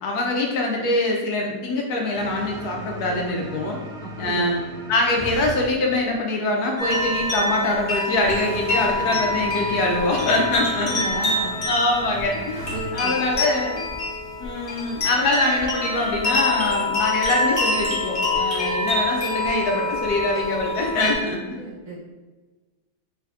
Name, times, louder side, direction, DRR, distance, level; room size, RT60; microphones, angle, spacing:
voice 1, 0.0-3.8 4.2-4.6 4.9-10.9 11.7-12.6 12.9-13.8 14.4-21.6, left 2 dB, 70° left, 0 dB, 1.2 m, -24 dB
sound 1, 2.1-5.5 8.2-12.8, equal, 75° right, 1.2 m, -37 dB
voice 2, 4.0-4.6 10.8-11.6 12.7-13.2 21.6-22.1, right 3 dB, 50° right, -7 dB, 1.4 m, -33 dB
sound 2, 6.8-21.2, left 2 dB, 30° left, 0.8 m, -26 dB
4.9 x 3.2 x 2.4 m, 1.2 s
omnidirectional pair, 1.8 m